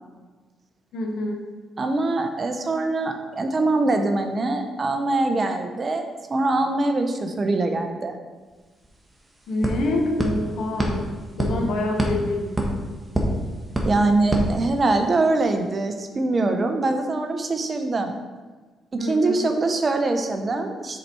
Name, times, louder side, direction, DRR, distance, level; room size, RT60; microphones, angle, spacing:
voice 1, 0.9-1.4 9.5-11.0 11.4-12.6 19.0-19.5, left 1 dB, 75° left, 0 dB, 1.3 m, -26 dB
voice 2, 1.8-8.2 13.8-18.1 18.9-21.0, right 2 dB, 35° right, 6 dB, 0.8 m, -23 dB
sound 1, 8.5-8.6 8.8-15.3, equal, 15° right, 1.3 m, -28 dB
6.5 x 4.3 x 4.6 m, 1.3 s
cardioid pair, 90°, 0 cm